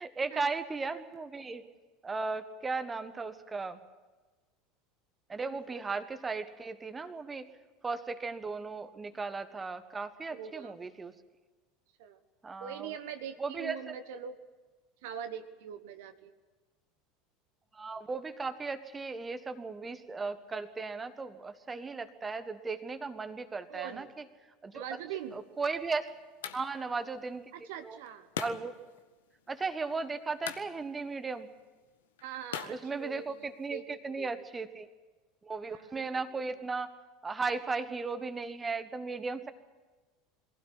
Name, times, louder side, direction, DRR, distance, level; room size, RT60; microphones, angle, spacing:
voice 1, 0.0-1.7 2.0-3.8 5.3-7.5 7.8-11.1 12.4-12.9 13.4-13.8 17.7-24.1 24.6-24.8 25.3-26.1 26.5-27.4 27.8-28.0 28.4-28.7 29.5-31.5 32.7-34.9 35.4-36.9 37.2-39.5, right 4 dB, 20° right, 10 dB, 1.4 m, -36 dB
voice 2, 10.3-10.8 12.0-12.2 12.6-14.4 15.0-16.3 23.7-24.1 24.7-25.4 27.5-28.3 32.2-34.3 35.7-36.2, right 9 dB, 60° right, 8 dB, 1.3 m, -42 dB
sound 1, 25.2-33.7, left 9 dB, 70° left, 1.3 m, -46 dB
22.5 x 16.0 x 9.8 m, 1.3 s
figure-of-eight pair, 75°, 0 cm